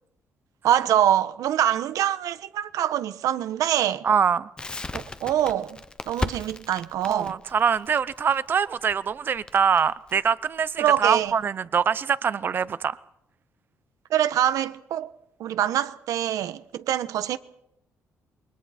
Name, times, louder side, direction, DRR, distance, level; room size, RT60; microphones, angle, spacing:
voice 1, 0.6-4.0 4.9-7.4 10.8-11.3 14.1-15.1 15.4-17.4, right 11 dB, 85° right, 1.2 m, -24 dB
voice 2, 4.0-4.5 7.0-13.0, right 7 dB, 35° right, 0.7 m, -24 dB
Crackle, 4.6-11.4, left 3 dB, 15° left, 0.8 m, -36 dB
28.0 x 23.5 x 4.4 m
cardioid pair, 165°, 6 cm